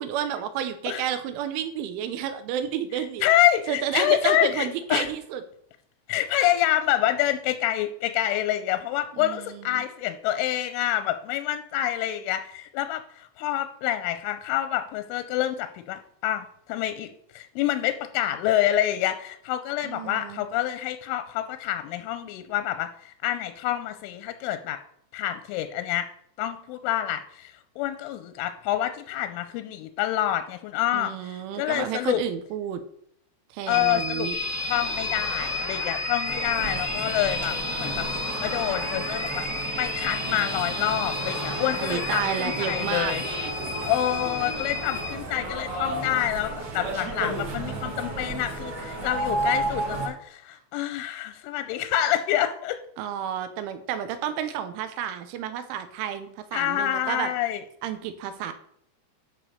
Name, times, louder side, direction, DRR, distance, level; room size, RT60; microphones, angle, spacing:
voice 1, 0.0-3.2 3.7-5.4 9.1-9.8 19.8-20.4 30.9-32.8 33.5-34.4 41.8-43.1 53.0-57.3 57.8-58.5, right 9 dB, 80° right, 10 dB, 3.4 m, -31 dB
voice 2, 3.2-5.1 6.1-24.8 25.1-26.1 26.4-32.2 33.7-34.3 34.7-38.1 38.4-43.2 43.8-52.8 56.5-57.6, left 12 dB, 85° left, 10 dB, 3.1 m, -27 dB
sound 1, 33.7-45.1, left 4 dB, 60° left, 2.0 m, -33 dB
sound 2, 34.3-43.5, equal, 5° right, 1.3 m, -36 dB
sound 3, 36.3-50.1, right 2 dB, 55° right, 4.4 m, -33 dB
11.5 x 5.3 x 6.6 m, 0.68 s
omnidirectional pair, 5.7 m